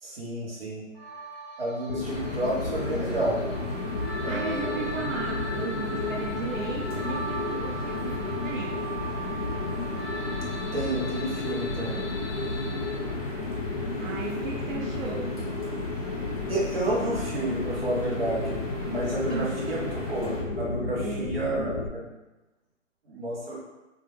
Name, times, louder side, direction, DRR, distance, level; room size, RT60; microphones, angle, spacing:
voice 1, 0.0-0.8 1.6-3.4 4.2-4.9 10.7-12.1 16.4-18.6 18.8-22.1 23.1-23.6, right 1 dB, 50° right, -5 dB, 0.7 m, -31 dB
sound 1, 0.9-12.9, right 1 dB, ahead, 0.3 m, -39 dB
sound 2, 1.9-21.9, left 3 dB, 90° left, 0.6 m, -32 dB
sound 3, 2.0-20.4, left 1 dB, 30° left, 0.7 m, -42 dB
voice 2, 4.3-9.0 14.0-15.4 19.3-19.6 20.9-21.4, right 4 dB, 85° right, -1 dB, 0.6 m, -35 dB
2.2 x 2.1 x 3.0 m, 1.1 s
hypercardioid pair, 170°, 39 cm